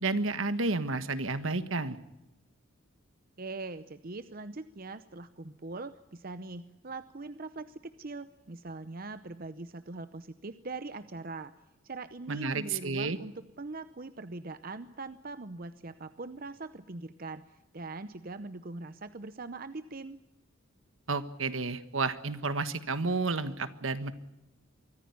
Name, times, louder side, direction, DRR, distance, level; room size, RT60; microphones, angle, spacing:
voice 1, 0.0-2.0 12.3-13.2 21.1-24.1, right 3 dB, 70° right, 12 dB, 1.5 m, -31 dB
voice 2, 3.4-11.5 11.8-20.2, right 3 dB, 45° right, 12 dB, 0.7 m, -42 dB
24.0 x 15.0 x 9.6 m, 0.96 s
head